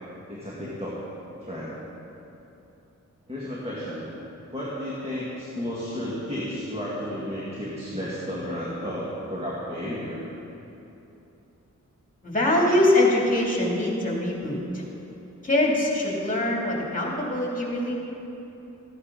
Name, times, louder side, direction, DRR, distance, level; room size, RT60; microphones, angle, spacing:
voice 1, 0.3-1.0 1.4-1.8 3.3-4.1 4.5-10.2, equal, 20° right, -7 dB, 2.2 m, -32 dB
voice 2, 12.2-14.8 15.4-17.9, left 1 dB, 25° left, -3 dB, 3.0 m, -23 dB
14.5 x 9.9 x 4.1 m, 3.0 s
cardioid pair, 60°, 32 cm